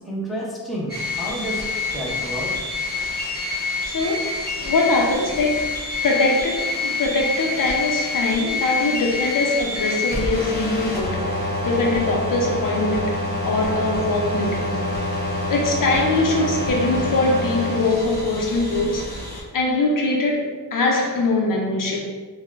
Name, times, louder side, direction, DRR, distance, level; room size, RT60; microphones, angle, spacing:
voice 1, 0.0-2.8, equal, ahead, -5 dB, 0.5 m, -30 dB
sound 1, 0.9-19.4, left 2 dB, 25° left, 0.8 m, -27 dB
voice 2, 3.9-5.7 6.0-14.9 15.5-19.1 19.5-22.0, left 2 dB, 55° left, -1 dB, 0.5 m, -22 dB
5.5 x 2.1 x 2.4 m, 1.4 s
wide cardioid pair, 175°, 40 cm